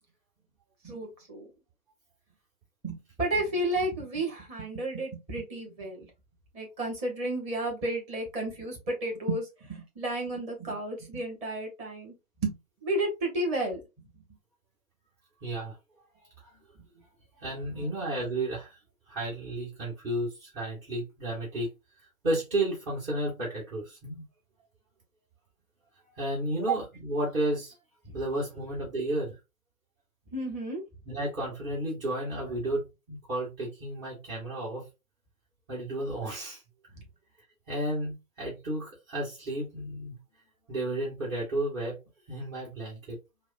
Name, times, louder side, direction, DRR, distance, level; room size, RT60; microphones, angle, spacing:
voice 1, 0.8-1.5 2.8-6.1 6.5-12.1 12.4-13.8 17.8-17.9 28.0-28.2 30.3-30.8 36.9-37.0, right 1 dB, 15° right, 0 dB, 1.1 m, -32 dB
voice 2, 15.4-15.8 17.4-18.8 19.1-21.7 22.2-24.2 26.2-27.7 28.1-29.4 31.1-34.9 35.7-36.6 37.7-40.2 40.7-41.9 42.3-43.2, right 1 dB, 40° right, -7 dB, 2.0 m, -32 dB
4.7 x 2.2 x 2.6 m, 0.25 s
figure-of-eight pair, 130°, 43 cm